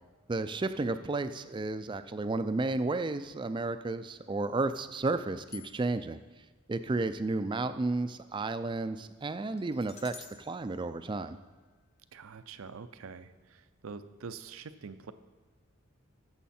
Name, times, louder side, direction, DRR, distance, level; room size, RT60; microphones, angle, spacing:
voice 1, 0.3-6.2 6.7-11.4, right 3 dB, 20° right, 11 dB, 0.3 m, -32 dB
sound 1, 5.5-6.2 9.6-11.8, left 5 dB, 30° left, 0.7 m, -52 dB
voice 2, 12.1-15.1, right 5 dB, 80° right, 12 dB, 0.5 m, -45 dB
14.0 x 7.3 x 4.3 m, 1.3 s
head